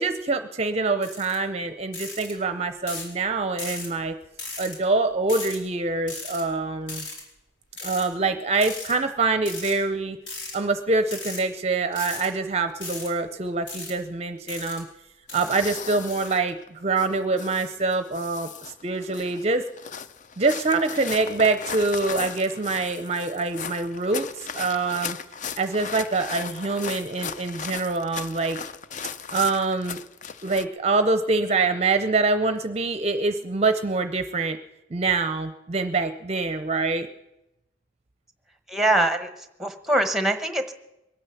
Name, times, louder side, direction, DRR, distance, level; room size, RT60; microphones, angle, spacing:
voice 1, 0.0-4.2 4.6-7.1 7.8-10.2 10.5-14.9 15.3-19.6 20.4-25.2 25.5-28.6 29.3-30.0 30.4-34.6 34.9-37.1, right 3 dB, 35° right, 9 dB, 0.6 m, -25 dB
sound 1, 1.0-1.4 1.9-2.3 2.9-3.1 3.6-3.9 4.4-4.8 5.3-5.6 6.1-6.4 6.9-7.2 7.8-8.1 8.6-8.9 9.5-9.8 10.3-10.6 11.1-11.4 11.9-12.3 12.8-13.1 13.7-13.9 14.5-14.8 15.3-15.6 16.1-16.3, left 3 dB, 70° left, 4.4 m, -36 dB
sound 2, 15.3-30.6, left 6 dB, 40° left, 0.5 m, -37 dB
voice 2, 38.7-39.3 39.6-40.7, right 1 dB, ahead, 9 dB, 1.0 m, -23 dB
22.0 x 9.1 x 6.9 m, 0.90 s
head